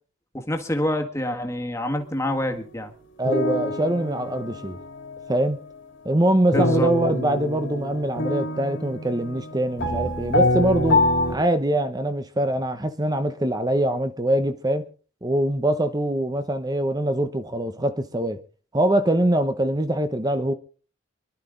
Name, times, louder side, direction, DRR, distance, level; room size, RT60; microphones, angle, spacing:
voice 1, 0.3-2.9 6.5-6.9, left 1 dB, 15° left, 1.8 m, -26 dB
sound 1, 1.9-2.3 3.2-5.3 6.5-11.4, left 1 dB, 70° left, 2.8 m, -25 dB
voice 2, 3.2-4.8 5.3-5.6 6.0-11.0 11.3-14.9 15.2-18.4 18.7-20.5, right 1 dB, 20° right, 0.9 m, -23 dB
24.5 x 12.0 x 3.9 m
head